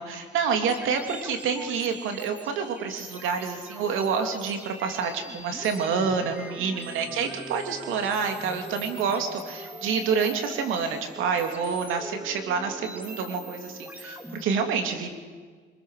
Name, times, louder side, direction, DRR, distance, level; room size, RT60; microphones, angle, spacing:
voice 1, 0.0-15.1, right 6 dB, 90° right, 5 dB, 3.2 m, -28 dB
sound 1, 0.7-14.4, right 1 dB, 10° right, 3.2 m, -42 dB
26.0 x 22.0 x 6.7 m, 1.5 s
cardioid pair, 90°, 20 cm